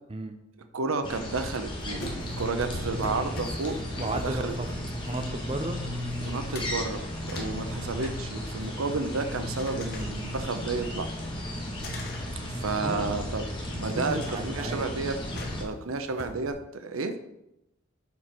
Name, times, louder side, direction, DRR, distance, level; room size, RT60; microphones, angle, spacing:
voice 1, 0.7-4.5 6.2-11.1 12.5-17.1, right 3 dB, 90° right, 8 dB, 0.7 m, -32 dB
sound 1, 1.0-15.6, equal, 25° left, 1.5 m, -35 dB
sound 2, 1.5-5.9 6.1-6.8 7.1-9.1 9.5-11.0 11.8-13.2 14.2-14.6 15.4-16.5, left 1 dB, 50° left, 1.3 m, -43 dB
voice 2, 4.0-4.7 5.1-5.8 12.4-13.0 13.8-14.9, right 2 dB, 30° right, 7 dB, 0.6 m, -34 dB
7.3 x 6.0 x 4.4 m, 0.86 s
head